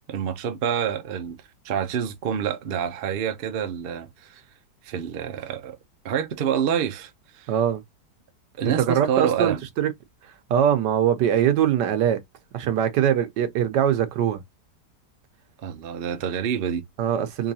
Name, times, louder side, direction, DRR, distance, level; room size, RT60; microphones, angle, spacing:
voice 1, 0.1-1.4 1.6-4.4 4.8-5.8 6.0-7.5 8.6-9.6 15.6-16.8, right 8 dB, 65° right, 0.5 m, -27 dB
voice 2, 7.5-7.8 8.8-9.9 10.2-12.2 12.5-14.4 17.0-17.5, right 9 dB, 85° right, 1.4 m, -22 dB
3.7 x 3.1 x 2.7 m
omnidirectional pair, 1.8 m